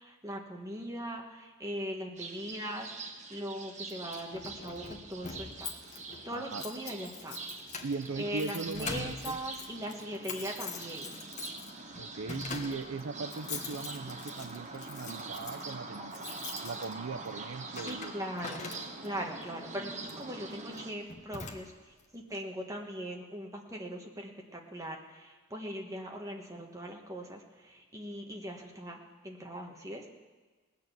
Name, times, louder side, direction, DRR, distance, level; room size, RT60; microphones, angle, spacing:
voice 1, 0.0-2.9 3.3-5.7 6.2-7.4 8.2-11.1 17.8-18.6 19.0-30.1, equal, 15° right, 1 dB, 1.4 m, -40 dB
sound 1, 2.2-20.9, right 3 dB, 30° right, 1.2 m, -44 dB
Keys jangling, 3.9-19.2 20.0-20.3 20.7-20.8 21.1-22.0, left 4 dB, 35° left, 1.2 m, -44 dB
voice 2, 6.3-6.6 7.8-9.4 12.0-16.1 16.6-18.1, right 4 dB, 65° right, 9 dB, 0.5 m, -39 dB
19.0 x 6.7 x 8.2 m, 1.3 s
head